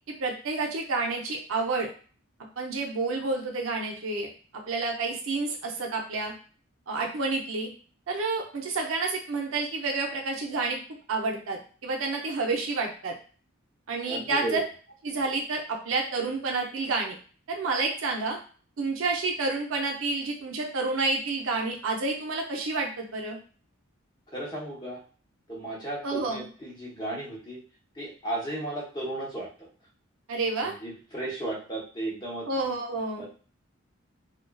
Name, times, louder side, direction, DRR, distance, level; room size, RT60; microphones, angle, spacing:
voice 1, 0.2-1.9 2.6-6.3 6.9-7.7 8.1-10.8 11.1-13.1 13.9-14.6 15.0-17.2 17.5-18.4 18.8-23.4 26.0-26.5 30.3-30.7 32.5-33.2, right 3 dB, 80° right, 1 dB, 0.6 m, -29 dB
voice 2, 14.1-14.6 24.3-25.0 25.5-27.6 27.9-29.5 30.6-32.5 33.2-33.3, right 1 dB, 20° left, -5 dB, 0.8 m, -34 dB
2.4 x 2.3 x 2.2 m, 0.40 s
head